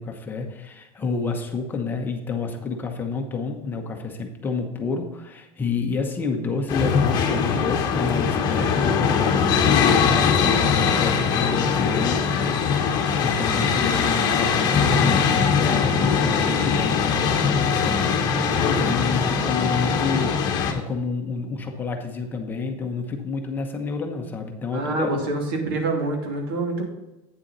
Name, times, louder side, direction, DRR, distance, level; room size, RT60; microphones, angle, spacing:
voice 1, 0.0-25.2, left 4 dB, 15° left, 3 dB, 1.0 m, -29 dB
sound 1, 6.7-20.7, left 6 dB, 35° left, 1.3 m, -21 dB
voice 2, 24.7-26.9, right 2 dB, 85° right, 2 dB, 2.6 m, -26 dB
9.1 x 7.2 x 4.0 m, 1.0 s
supercardioid pair, 160°, 12 cm